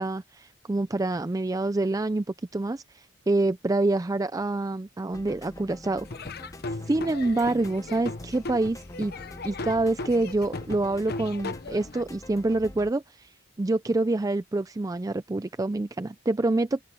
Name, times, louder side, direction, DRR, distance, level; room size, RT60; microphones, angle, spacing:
voice 1, 0.0-2.2 2.5-6.1 6.9-9.1 9.4-13.3 13.6-16.8, right 2 dB, 15° right, 0.4 m, -26 dB
sound 1, 5.1-12.9, left 1 dB, 15° left, 1.1 m, -46 dB
Laughter / Drum, 6.1-12.0, left 3 dB, 55° left, 0.9 m, -37 dB
open air
head